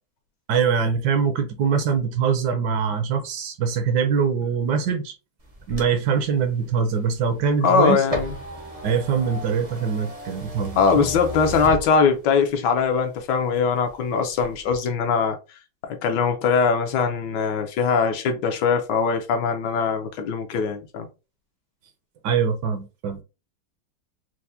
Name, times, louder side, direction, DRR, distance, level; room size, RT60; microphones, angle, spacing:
voice 1, 0.5-5.1 5.7-8.0 8.8-11.1 22.2-23.2, right 6 dB, 70° right, 1.2 m, -23 dB
sound 1, 5.4-12.5 12.9-13.9 14.3-14.7, equal, 55° right, 0.4 m, -35 dB
voice 2, 7.6-8.3 10.8-15.4 15.8-21.1, left 5 dB, 75° left, 1.1 m, -21 dB
4.5 x 2.1 x 2.6 m
omnidirectional pair, 2.1 m